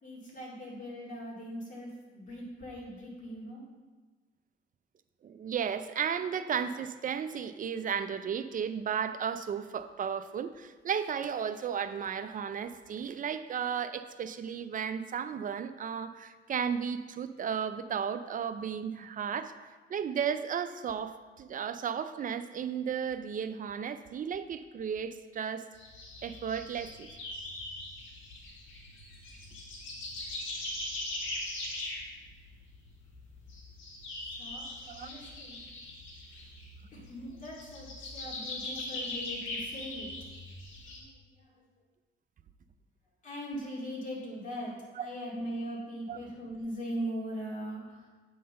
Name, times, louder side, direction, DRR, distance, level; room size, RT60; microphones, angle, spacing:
voice 1, 0.0-3.6 34.4-35.6 36.9-40.1 40.9-41.4 43.2-48.0, equal, 40° left, -4 dB, 2.4 m, -40 dB
voice 2, 5.2-19.5 19.9-25.6 26.2-27.1 34.9-35.1 39.0-39.1 45.0-45.1 46.1-46.2, right 7 dB, 45° right, 10 dB, 0.5 m, -34 dB
sound 1, 25.8-41.0, left 2 dB, 80° left, 1.6 m, -41 dB
8.5 x 3.8 x 5.3 m, 1.3 s
cardioid pair, 90°, 20 cm